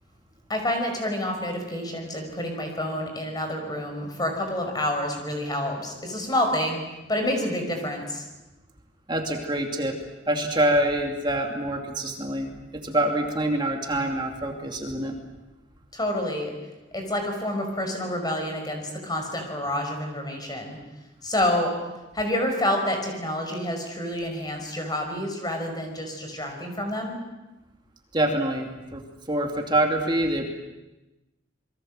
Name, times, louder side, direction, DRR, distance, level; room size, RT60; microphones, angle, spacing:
voice 1, 0.5-6.8 7.1-8.2 15.9-16.5 16.9-20.8 21.2-21.7 22.1-27.2, left 1 dB, 20° left, 4 dB, 5.5 m, -28 dB
voice 2, 9.1-10.0 10.3-12.5 12.8-15.1 28.1-29.0 29.3-30.5, right 1 dB, 25° right, 2 dB, 2.6 m, -25 dB
27.5 x 22.5 x 7.7 m, 1.0 s
head